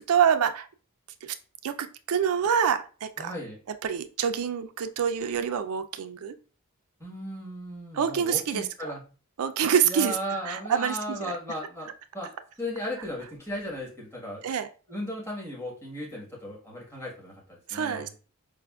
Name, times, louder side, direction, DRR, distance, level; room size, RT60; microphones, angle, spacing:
voice 1, 0.1-0.7 1.2-1.4 1.6-3.3 3.8-6.3 7.9-8.6 9.4-10.2 10.4-11.3 14.4-14.7 17.7-18.2, right 8 dB, 75° right, 9 dB, 0.4 m, -26 dB
voice 2, 3.2-3.6 7.0-9.0 9.8-12.3 12.6-14.5 14.9-18.2, equal, 10° left, -4 dB, 1.2 m, -36 dB
4.9 x 2.4 x 2.3 m, 0.37 s
head